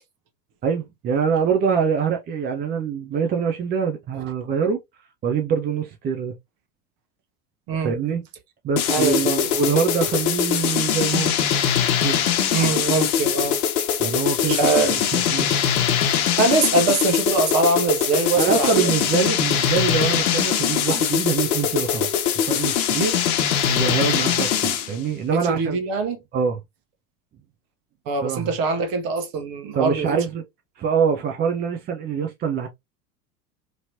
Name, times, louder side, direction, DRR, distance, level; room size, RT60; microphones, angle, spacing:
voice 1, 0.6-4.8 5.2-6.3 7.8-8.2 8.6-11.3 12.0-12.2 14.0-15.5 18.4-22.1 22.3-23.2 23.7-25.8 26.3-26.6 28.2-28.5 29.7-30.4 30.8-32.7, right 6 dB, 20° right, 0.5 m, -24 dB
sound 1, 8.8-25.0, left 8 dB, 60° left, 0.9 m, -22 dB
voice 2, 8.9-9.5 12.5-13.6 14.5-15.0 15.4-15.5 16.4-18.9 25.3-26.2 28.1-30.2, right 3 dB, 45° right, 1.1 m, -23 dB
3.0 x 2.9 x 2.6 m
figure-of-eight pair, 80°, 48 cm